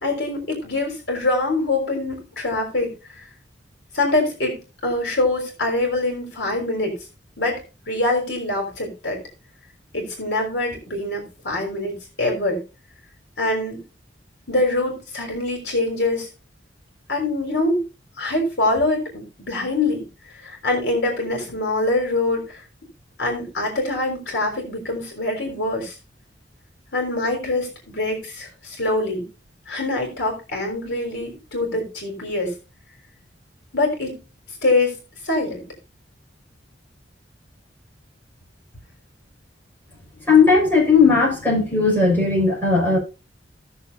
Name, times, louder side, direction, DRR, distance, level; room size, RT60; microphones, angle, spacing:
voice 1, 0.0-2.9 3.9-7.0 7.4-7.6 7.9-9.2 9.9-12.6 13.4-13.8 14.5-16.3 17.1-17.8 18.2-22.6 23.2-25.9 26.9-29.3 29.7-32.5 33.7-34.2 34.6-35.0 35.2-35.6, left 2 dB, 65° left, 2 dB, 3.7 m, -24 dB
voice 2, 40.3-43.0, left 4 dB, 10° left, -5 dB, 6.0 m, -16 dB
17.0 x 6.8 x 2.7 m, 0.29 s
head